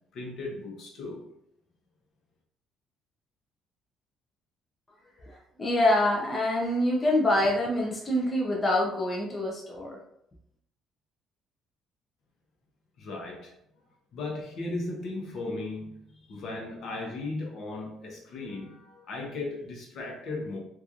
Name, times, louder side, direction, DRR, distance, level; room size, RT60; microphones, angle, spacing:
voice 1, 0.1-1.3 13.0-13.5 14.1-16.0 16.3-20.6, left 2 dB, 55° left, 0.7 m, -36 dB
voice 2, 5.3-10.0, left 1 dB, 15° left, 0.5 m, -26 dB
2.9 x 2.4 x 2.4 m
cardioid pair, 155°, 0 cm